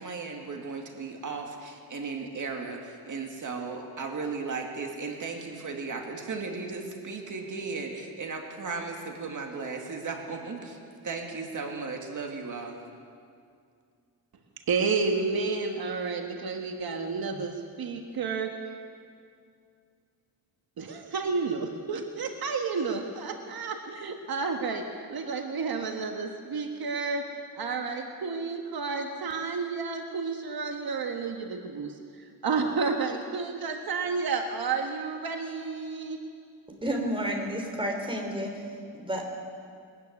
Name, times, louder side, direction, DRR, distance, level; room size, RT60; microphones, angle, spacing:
voice 1, 0.0-10.8 11.0-12.8, right 4 dB, 50° right, 2 dB, 2.4 m, -36 dB
voice 2, 14.7-18.5 20.8-27.2 27.5-36.2, right 4 dB, 70° right, 4 dB, 1.5 m, -31 dB
voice 3, 36.7-38.6 38.9-39.2, equal, 15° right, 2 dB, 3.3 m, -31 dB
22.0 x 14.0 x 9.6 m, 2.3 s
wide cardioid pair, 145°, 38 cm